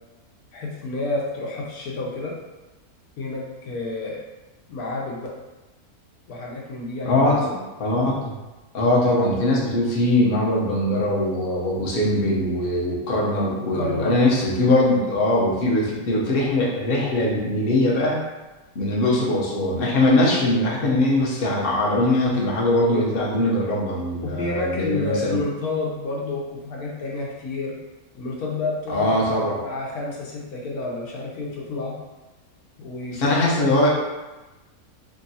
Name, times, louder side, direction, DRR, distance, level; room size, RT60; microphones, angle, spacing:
voice 1, 0.5-2.4 3.2-4.2 4.7-5.3 6.3-7.6 13.4-14.2 24.4-27.7 28.1-31.9 32.8-33.5 33.7-33.8, left 3 dB, 80° left, -3 dB, 1.2 m, -30 dB
voice 2, 7.0-7.4 7.8-8.3 8.7-18.2 18.7-25.4 28.9-29.6 33.1-33.9, left 1 dB, 50° left, -4 dB, 0.8 m, -21 dB
3.0 x 2.5 x 4.0 m, 1.1 s
omnidirectional pair, 1.6 m